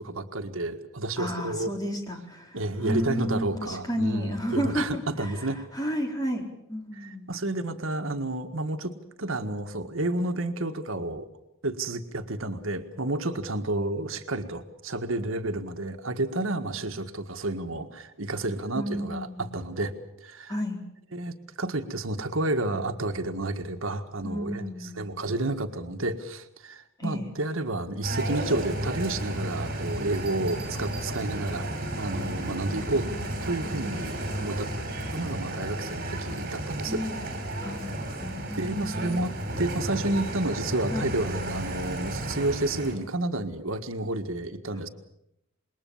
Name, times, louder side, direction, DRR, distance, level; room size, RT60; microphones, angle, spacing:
voice 1, 0.0-1.7 2.5-5.6 6.9-8.9 9.2-11.3 11.6-19.9 20.2-20.5 21.1-31.7 32.0-33.1 33.4-34.7 35.1-37.0 38.6-44.9, right 2 dB, 75° right, 6 dB, 1.7 m, -30 dB
voice 2, 1.2-7.3 18.7-19.6 20.5-20.8 24.2-25.4 27.0-27.3 36.8-37.3 37.6-38.0 38.2-39.2 40.9-41.1, equal, 20° left, 1 dB, 4.2 m, -32 dB
sound 1, 28.0-42.9, right 1 dB, 45° right, 5.8 m, -33 dB
Bell, 29.9-31.8 33.5-33.8, right 4 dB, 25° right, 4.2 m, -49 dB
27.0 x 21.5 x 7.2 m, 0.81 s
head